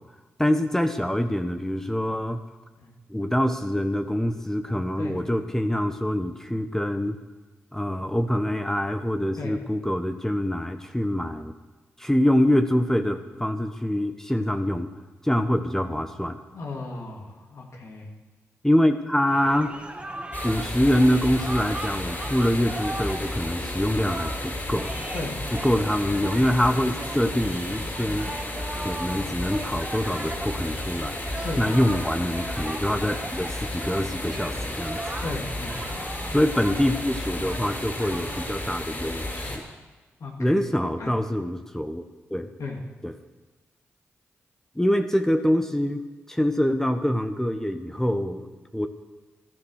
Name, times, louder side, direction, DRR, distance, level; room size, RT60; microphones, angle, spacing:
voice 1, 0.4-2.4 3.1-7.2 7.7-11.5 12.0-14.9 15.2-16.4 18.6-19.8 20.4-24.9 25.6-28.3 28.7-31.1 31.6-35.0 36.3-39.7 40.4-42.0 42.3-42.5 43.0-43.1 44.7-46.0 46.3-48.5 48.7-48.9, equal, 10° left, 7 dB, 1.2 m, -25 dB
voice 2, 16.5-18.1 25.1-25.4 31.4-31.6 35.2-35.8 40.2-40.6 41.0-41.1 42.6-42.8, left 3 dB, 70° left, 0 dB, 2.8 m, -35 dB
sound 1, 19.3-38.7, right 1 dB, 20° right, 2.2 m, -38 dB
sound 2, 20.3-39.6, left 1 dB, 40° left, 4.8 m, -33 dB
14.0 x 12.0 x 6.6 m, 1.2 s
supercardioid pair, 40°, 5 cm